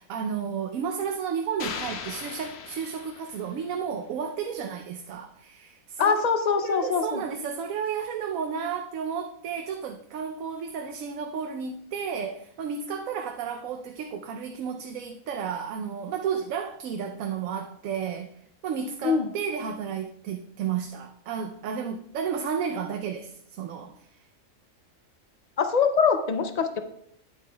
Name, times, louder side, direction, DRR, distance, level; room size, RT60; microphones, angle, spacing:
voice 1, 0.0-6.2 6.5-24.3, right 7 dB, 80° right, 1.0 m, -32 dB
sound 1, 1.6-3.8, left 6 dB, 55° left, 0.9 m, -38 dB
voice 2, 6.0-7.2 19.0-19.3 25.6-26.8, left 6 dB, 75° left, 0.3 m, -23 dB
9.2 x 9.2 x 2.3 m
omnidirectional pair, 1.4 m